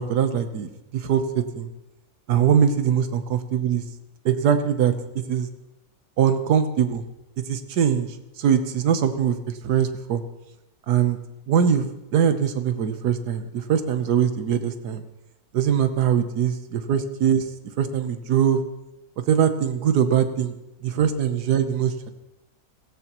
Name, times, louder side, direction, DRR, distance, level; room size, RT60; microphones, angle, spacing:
voice 1, 0.0-1.7 2.3-3.8 4.2-4.9 5.3-5.5 6.2-7.0 7.5-10.2 10.9-11.2 11.5-15.0 15.5-17.4 17.8-18.6 19.2-20.6 20.8-22.1, right 8 dB, 90° right, 9 dB, 1.5 m, -22 dB
17.5 x 16.5 x 3.0 m, 0.94 s
omnidirectional pair, 1.7 m